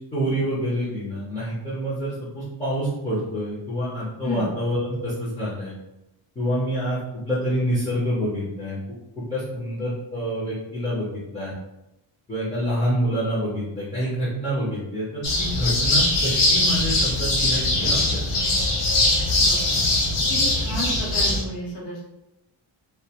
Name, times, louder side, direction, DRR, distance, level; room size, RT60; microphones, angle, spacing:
voice 1, 0.1-5.7 6.4-8.8 9.2-11.5 12.3-18.4, equal, 15° left, -9 dB, 0.5 m, -27 dB
voice 2, 4.2-4.6 19.4-19.7 20.3-22.0, left 1 dB, 55° left, -5 dB, 0.8 m, -32 dB
sound 1, 15.2-21.4, left 2 dB, 90° left, 0.9 m, -21 dB
2.3 x 2.2 x 2.8 m, 0.93 s
wide cardioid pair, 175°, 50 cm